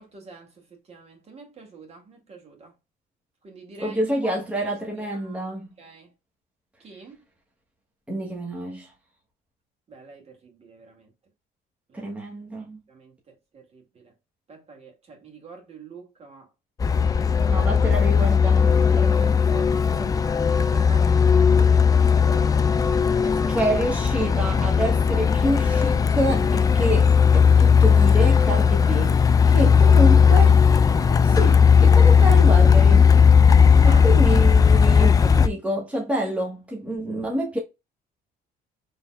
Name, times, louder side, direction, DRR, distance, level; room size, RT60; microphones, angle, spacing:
voice 1, 0.0-2.7 3.4-5.4 5.8-6.1 6.8-7.2 9.9-11.1 11.9-12.1 12.9-14.1 14.5-16.5 17.0-17.6 19.0-20.1 20.5-22.7 23.1-23.5 29.6-29.7 33.8-34.1, right 4 dB, 40° right, 1.9 m, -44 dB
voice 2, 3.8-5.7 8.1-8.9 11.9-12.8 17.5-19.3 23.5-30.6 31.2-33.1 33.8-37.6, right 1 dB, 5° right, 1.2 m, -28 dB
Truck, 16.8-35.5, left 6 dB, 20° left, 0.3 m, -17 dB
4.3 x 3.4 x 2.3 m
cardioid pair, 110°, 17 cm